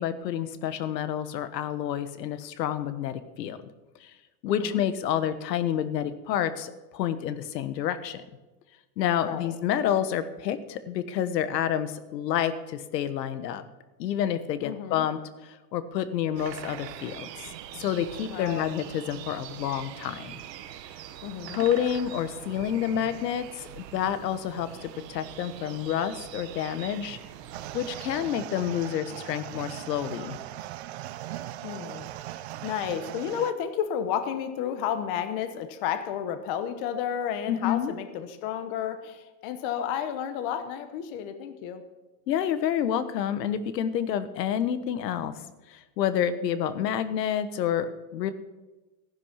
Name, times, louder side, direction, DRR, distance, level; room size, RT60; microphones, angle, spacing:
voice 1, 0.0-3.6 4.0-4.1 4.4-8.2 9.0-13.6 14.0-17.5 17.8-20.3 21.5-27.2 27.7-30.4 37.5-37.9 42.3-45.3 45.7-48.3, left 9 dB, 85° left, 12 dB, 1.3 m, -29 dB
voice 2, 4.4-4.8 9.2-9.5 14.6-15.1 18.3-18.8 21.2-21.7 31.6-41.8, left 9 dB, 35° left, 9 dB, 1.0 m, -32 dB
sound 1, 16.3-28.4, right 11 dB, 80° right, 1.2 m, -43 dB
sound 2, 27.5-33.5, right 14 dB, 45° right, 0.4 m, -39 dB
15.0 x 11.0 x 5.8 m, 1.1 s
supercardioid pair, 175°, 48 cm